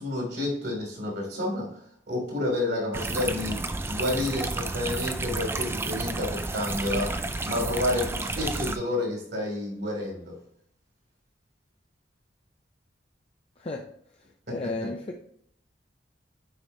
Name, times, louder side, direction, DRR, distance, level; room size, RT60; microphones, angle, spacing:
voice 1, 0.0-1.7 2.1-3.6 3.9-10.3 14.5-14.6, left 1 dB, 65° right, -1 dB, 3.0 m, -30 dB
sound 1, 2.9-8.8, right 2 dB, 15° right, 0.3 m, -31 dB
voice 2, 14.5-15.2, left 2 dB, 35° left, 1 dB, 0.6 m, -33 dB
9.6 x 4.5 x 2.8 m, 0.66 s
head